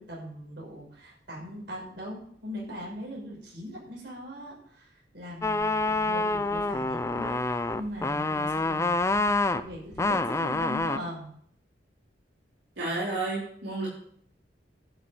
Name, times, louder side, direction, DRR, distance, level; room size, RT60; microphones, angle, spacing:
voice 1, 0.0-9.2 9.5-11.3, equal, 70° right, -3 dB, 6.1 m, -40 dB
sound 1, 5.4-11.0, left 2 dB, 15° left, 0.5 m, -27 dB
voice 2, 12.8-13.9, right 2 dB, 85° right, -7 dB, 4.5 m, -31 dB
11.5 x 6.4 x 8.8 m, 0.63 s
head